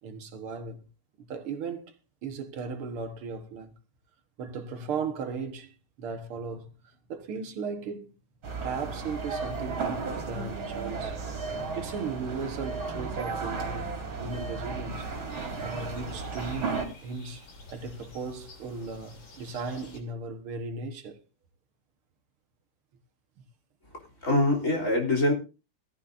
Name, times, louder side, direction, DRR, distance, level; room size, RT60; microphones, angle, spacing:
voice 1, 0.0-0.8 1.2-1.9 2.2-3.7 4.4-8.1 8.6-11.2 11.8-15.1 15.6-17.4 17.7-21.2, right 4 dB, 85° right, 2.3 m, -36 dB
sound 1, 8.4-16.9, right 4 dB, 70° right, 4.1 m, -34 dB
sound 2, 15.0-20.0, left 2 dB, 60° left, 4.1 m, -50 dB
voice 2, 23.9-25.3, left 1 dB, 35° left, 3.7 m, -25 dB
17.5 x 15.0 x 2.6 m
omnidirectional pair, 2.3 m